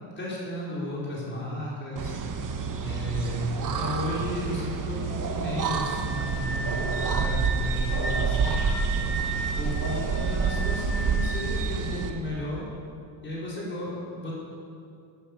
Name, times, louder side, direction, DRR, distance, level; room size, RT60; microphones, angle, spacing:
voice 1, 0.2-2.2 2.8-8.6 9.6-12.7 13.2-14.3, left 1 dB, 25° left, -5 dB, 4.5 m, -33 dB
sound 1, 2.0-12.1, right 5 dB, 45° right, 1.3 m, -28 dB
Wind instrument woodwind instrument, 5.6-12.0, right 2 dB, ahead, 5.1 m, -36 dB
13.0 x 12.5 x 8.0 m, 2.4 s
cardioid pair, 160°, 44 cm